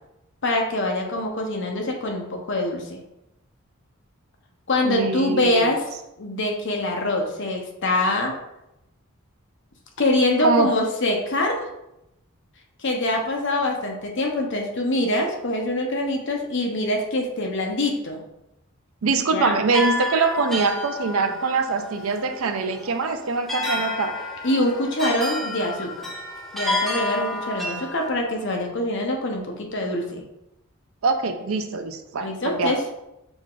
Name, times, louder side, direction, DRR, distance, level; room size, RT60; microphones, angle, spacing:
voice 1, 0.4-3.0 4.7-5.8 6.2-8.3 10.0-11.6 12.8-18.2 19.3-19.6 24.4-26.1 26.5-30.2 32.2-32.8, left 1 dB, 60° left, 1 dB, 0.8 m, -24 dB
voice 2, 4.8-5.7 10.4-10.7 19.0-24.2 31.0-32.8, right 4 dB, 75° right, 7 dB, 0.5 m, -23 dB
sound 1, 19.7-28.1, left 1 dB, ahead, 0.5 m, -30 dB
4.9 x 2.4 x 3.7 m, 0.88 s
head